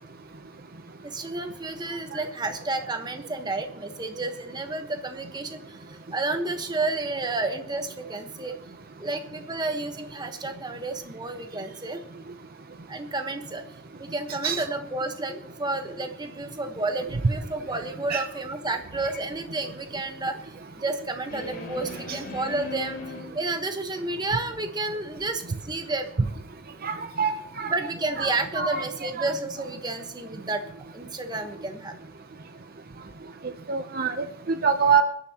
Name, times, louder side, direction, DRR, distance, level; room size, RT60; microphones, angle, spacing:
voice 1, 1.0-8.6 9.0-12.0 12.9-26.1 27.7-30.6 30.9-32.0, right 2 dB, 20° right, 6 dB, 1.2 m, -31 dB
sound 1, 18.8-19.2 21.3-23.2, left 3 dB, 45° left, 3.5 m, -38 dB
voice 2, 26.8-27.7 28.2-29.3 33.7-35.0, right 6 dB, 45° right, 8 dB, 0.7 m, -26 dB
24.0 x 10.5 x 2.9 m, 0.73 s
head